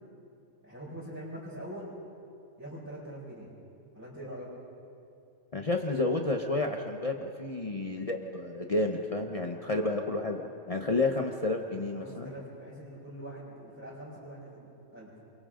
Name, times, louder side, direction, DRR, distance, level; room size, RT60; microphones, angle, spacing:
voice 1, 0.6-1.9 2.6-3.5 3.9-4.5 9.5-9.9 11.9-15.1, right 1 dB, 15° right, -10 dB, 5.2 m, -43 dB
voice 2, 5.5-10.4 10.7-12.3, left 2 dB, 30° left, 2 dB, 1.0 m, -30 dB
28.5 x 23.5 x 3.9 m, 2.5 s
omnidirectional pair, 1.3 m